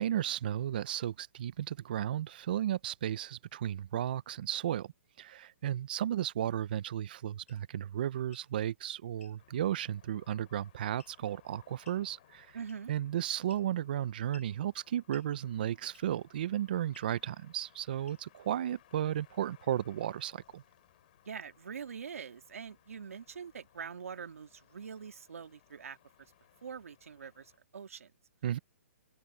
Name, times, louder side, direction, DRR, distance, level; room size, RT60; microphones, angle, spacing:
voice 1, 0.0-4.9 5.2-12.6 12.9-20.6 28.4-28.6, right 11 dB, 40° right, 0.4 m, -34 dB
sound 1, 7.5-7.6 8.2-8.5 9.2-9.4 11.0-11.3 11.8-12.1 12.7-13.0 13.5-13.9 14.3-14.5 15.1-15.3 15.9-16.2 16.9-17.1 18.0-18.4, left 6 dB, 85° left, 2.7 m, -60 dB
sound 2, 9.4-27.6, left 13 dB, 40° left, 3.4 m, -65 dB
voice 2, 12.5-12.9 21.3-26.0 26.6-28.1, right 6 dB, 90° right, 1.8 m, -44 dB
open air
hypercardioid pair, 170°, 7 cm